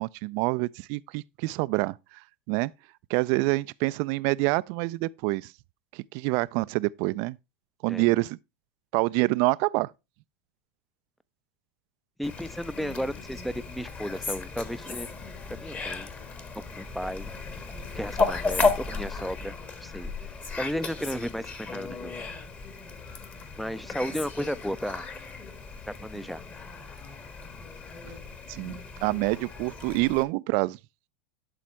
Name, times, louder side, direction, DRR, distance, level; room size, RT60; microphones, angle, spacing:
voice 1, 0.0-2.2 2.5-2.7 3.1-5.5 5.9-7.4 7.8-8.4 8.9-9.9 28.5-30.8, right 23 dB, 55° right, 0.4 m, -27 dB
Fowl, 12.2-30.2, left 4 dB, 25° left, 1.5 m, -34 dB
voice 2, 12.2-15.1 15.5-16.1 16.7-17.3 18.0-19.6 19.8-20.1 20.6-22.1 23.6-25.0 25.9-26.4, equal, ahead, 0.5 m, -34 dB
11.5 x 4.2 x 4.4 m
hypercardioid pair, 100°, 6 cm